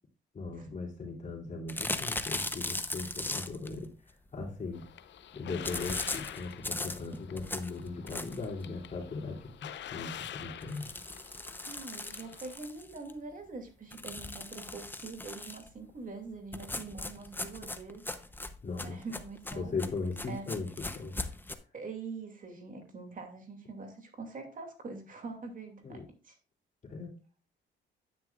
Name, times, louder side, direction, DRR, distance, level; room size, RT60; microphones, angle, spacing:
voice 1, 0.3-4.9 5.3-9.5 9.9-10.9 14.5-14.8 18.6-19.0 19.5-21.3 25.8-26.0 26.8-27.1, left 3 dB, 40° left, 0 dB, 3.4 m, -38 dB
sound 1, 1.7-3.7 5.6-8.5 9.0-9.1 9.4-9.5 9.8-9.9 10.6-13.1 13.9-15.7 16.5-21.5, left 2 dB, 10° left, 0.9 m, -38 dB
sound 2, 4.7-12.6, left 11 dB, 65° left, 0.7 m, -46 dB
voice 2, 11.6-18.0 18.8-19.7 20.2-20.4 21.7-26.3, right 4 dB, 45° right, 4 dB, 2.6 m, -44 dB
9.8 x 9.7 x 2.5 m, 0.35 s
cardioid pair, 90°, 20 cm